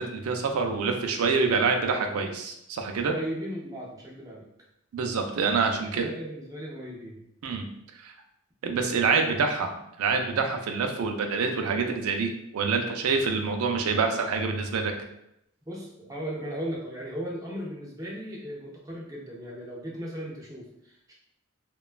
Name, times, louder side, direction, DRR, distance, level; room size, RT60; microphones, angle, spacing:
voice 1, 0.0-3.1 4.9-6.0 7.4-7.7 8.0-8.1 8.6-14.9, right 4 dB, 90° right, 3 dB, 0.4 m, -26 dB
voice 2, 3.0-4.5 5.7-7.2 15.6-21.1, equal, 15° right, -3 dB, 0.4 m, -37 dB
2.9 x 2.2 x 2.4 m, 0.79 s
head